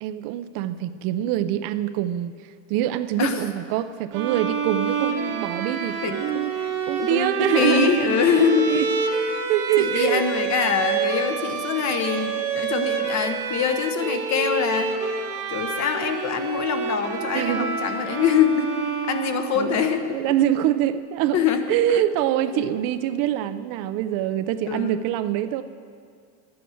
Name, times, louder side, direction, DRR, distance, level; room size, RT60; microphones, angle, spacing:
voice 1, 0.0-8.9 9.5-10.2 17.3-18.1 19.5-21.4 21.7-25.6, right 12 dB, 50° right, 11 dB, 0.5 m, -25 dB
sound 1, 4.1-19.8, right 5 dB, 85° right, 1.9 m, -28 dB
voice 2, 7.0-9.4 9.8-14.9 15.5-18.7 19.1-20.2 21.3-21.6 21.9-22.0 22.5-22.7 24.7-25.0, left 7 dB, 40° left, 7 dB, 1.0 m, -24 dB
11.5 x 8.6 x 7.0 m, 2.1 s
cardioid pair, 145°, 44 cm